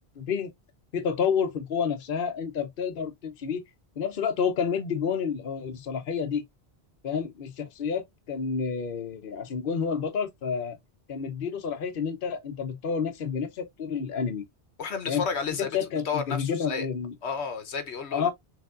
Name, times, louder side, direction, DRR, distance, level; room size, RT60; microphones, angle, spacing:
voice 1, 0.2-0.5 0.9-3.6 4.0-6.4 7.0-10.8 11.1-14.4 15.1-15.2 15.6-17.1 18.1-18.3, left 6 dB, 60° left, 1.0 m, -29 dB
voice 2, 14.8-15.7 16.0-16.9 17.2-18.3, left 5 dB, 85° left, 1.2 m, -31 dB
6.2 x 3.3 x 2.5 m
omnidirectional pair, 1.1 m